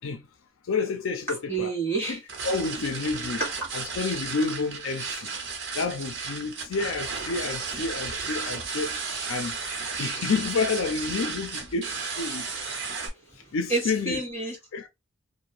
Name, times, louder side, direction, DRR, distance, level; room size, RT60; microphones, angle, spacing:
voice 1, 0.7-1.7 2.1-3.4 3.7-5.3 5.8-9.0 9.3-9.6 10.0-12.5 13.5-14.2 14.7-14.9, left 4 dB, 80° left, 0.5 m, -29 dB
voice 2, 1.5-2.2 3.4-3.5 12.5-12.6 13.7-14.6, right 3 dB, 10° left, 1.3 m, -28 dB
sound 1, 2.3-13.1, right 4 dB, 65° right, 0.8 m, -34 dB
2.6 x 2.1 x 2.8 m
head